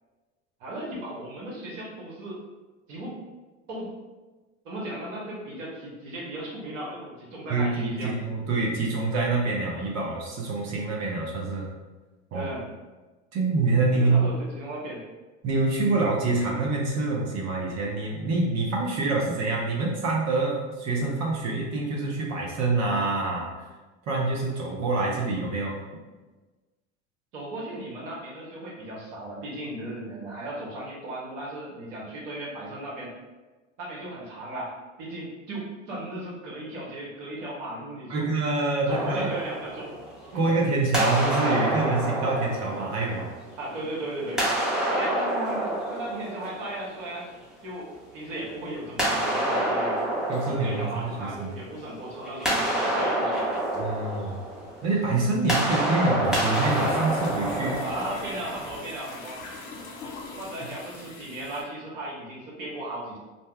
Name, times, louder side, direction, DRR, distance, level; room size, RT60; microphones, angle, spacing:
voice 1, 0.6-2.4 2.9-3.2 3.7-3.9 4.6-8.1 12.3-12.6 13.9-15.0 27.3-33.1 33.8-38.3 38.9-39.9 40.3-40.5 43.6-44.4 44.9-47.3 47.6-50.0 50.4-53.6 55.7-55.8 57.8-59.4 60.4-63.2, right 1 dB, 75° right, -4 dB, 1.0 m, -36 dB
voice 2, 7.5-11.7 12.3-12.5 13.3-14.3 15.4-23.5 24.1-26.0 38.1-39.3 40.3-43.3 50.3-51.5 53.8-54.4 54.8-57.8, right 3 dB, 45° right, -2 dB, 0.8 m, -26 dB
sound 1, 38.9-40.5 40.9-43.7 44.3-47.2 49.0-51.8 52.1-58.8, right 1 dB, ahead, 0.7 m, -28 dB
sound 2, 54.6-61.6, left 3 dB, 55° left, 0.9 m, -41 dB
2.7 x 2.2 x 3.3 m, 1.2 s
hypercardioid pair, 75°, 39 cm